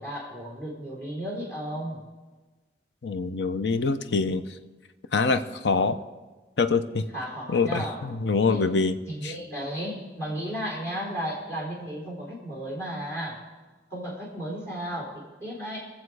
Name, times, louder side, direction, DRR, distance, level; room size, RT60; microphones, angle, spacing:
voice 1, 0.0-2.0 7.1-8.0 8.5-8.7 9.1-13.3 13.9-15.8, equal, 15° left, -4 dB, 3.8 m, -34 dB
voice 2, 3.0-4.4 5.1-6.0 6.6-7.0 7.5-9.0 9.2-9.3, left 4 dB, 80° left, 11 dB, 0.6 m, -24 dB
21.5 x 7.3 x 4.8 m, 1.3 s
head